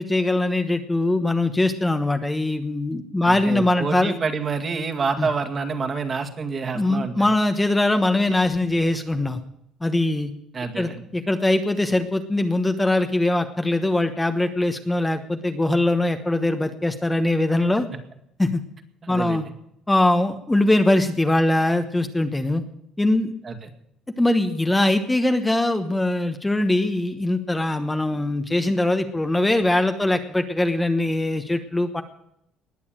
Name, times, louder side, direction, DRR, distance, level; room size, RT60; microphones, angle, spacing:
voice 1, 0.0-4.2 5.2-5.3 6.7-9.4 9.8-10.3 10.7-17.9 18.4-18.6 19.1-19.4 19.9-22.6 23.0-23.3 24.2-32.0, left 1 dB, 10° left, 7 dB, 1.1 m, -22 dB
voice 2, 3.2-7.2 10.5-11.0 19.0-19.4 23.4-23.7, right 4 dB, 35° right, 6 dB, 2.0 m, -28 dB
19.5 x 7.1 x 9.0 m, 0.76 s
cardioid pair, 100°, 0 cm